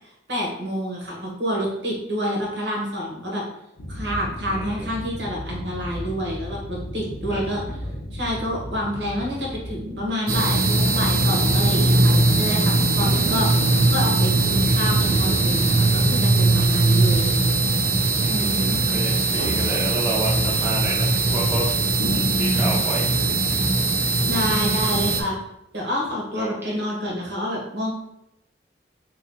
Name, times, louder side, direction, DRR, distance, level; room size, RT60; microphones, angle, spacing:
voice 1, 0.3-3.4 3.9-7.6 8.1-17.3 18.3-18.8 24.3-25.4 25.7-27.9, equal, 70° right, -2 dB, 1.2 m, -28 dB
sound 1, 3.8-10.1, equal, 85° left, 0.8 m, -34 dB
voice 2, 4.5-4.9 7.3-7.5 12.9-13.2 13.6-13.8 18.2-21.7 22.1-23.2 26.3-26.8, right 1 dB, 15° right, -5 dB, 0.7 m, -31 dB
sound 2, 10.3-25.2, right 2 dB, 50° right, 0.5 m, -20 dB
3.1 x 2.4 x 4.2 m, 0.82 s
head